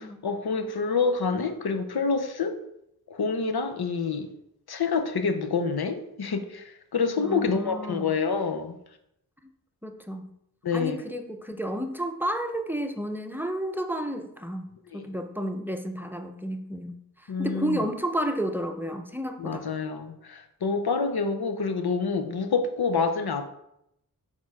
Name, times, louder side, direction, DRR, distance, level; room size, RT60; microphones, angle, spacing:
voice 1, 0.0-2.6 3.1-4.3 4.7-8.8 10.6-11.0 14.9-15.1 17.3-17.8 19.4-23.5, left 4 dB, 85° left, 0.7 m, -27 dB
voice 2, 7.2-8.1 9.4-9.5 9.8-10.3 10.7-14.6 14.9-19.7, equal, 5° right, 0.6 m, -31 dB
6.4 x 3.7 x 4.7 m
wide cardioid pair, 65°, 37 cm